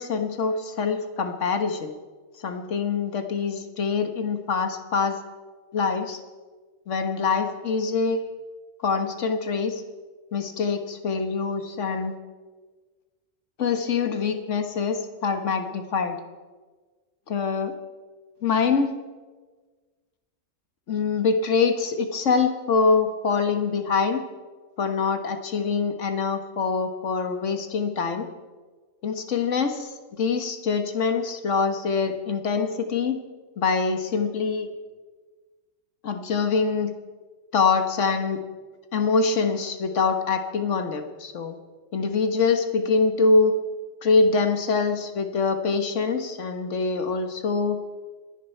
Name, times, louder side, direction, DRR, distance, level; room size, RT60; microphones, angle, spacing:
voice 1, 0.0-1.9 2.4-5.2 5.7-6.2 6.9-8.2 8.8-9.8 10.3-12.1 13.6-16.2 17.3-17.7 18.4-18.9 20.9-24.2 24.8-28.2 29.0-29.9 30.2-33.2 33.6-34.7 36.0-36.9 37.5-38.4 38.9-41.6 41.9-43.5 44.0-47.8, left 4 dB, 70° left, 7 dB, 1.6 m, -24 dB
26.5 x 10.0 x 4.5 m, 1.4 s
omnidirectional pair, 1.3 m